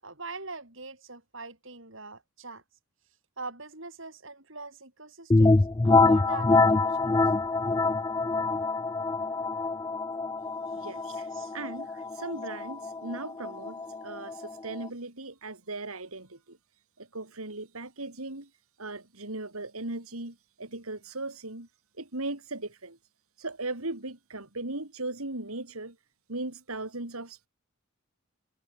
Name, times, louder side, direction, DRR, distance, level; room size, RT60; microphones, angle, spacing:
voice 1, 0.0-2.6 3.4-5.5 5.8-7.1 11.0-11.5, right 3 dB, 55° right, 5.8 m, -42 dB
sound 1, 5.3-14.9, left 3 dB, 15° left, 0.3 m, -25 dB
voice 2, 10.7-11.2 11.5-11.9 12.1-16.6 17.0-18.5 18.8-21.7 22.0-23.0 23.4-26.0 26.3-27.5, right 2 dB, 75° right, 3.8 m, -38 dB
head